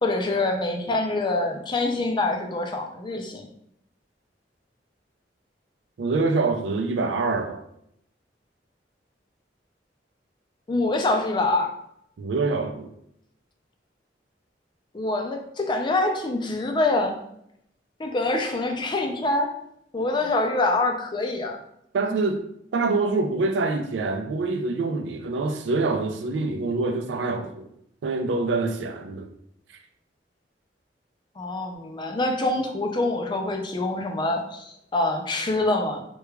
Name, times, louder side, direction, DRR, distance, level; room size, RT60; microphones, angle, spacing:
voice 1, 0.0-3.5 10.7-11.7 14.9-17.2 18.0-19.5 19.9-21.6 31.4-36.0, left 2 dB, 25° left, 0.4 m, -25 dB
voice 2, 6.0-7.6 12.2-12.9 21.9-22.4 22.7-27.7 28.0-29.3, right 3 dB, 85° right, 0.4 m, -25 dB
4.6 x 2.3 x 2.3 m
head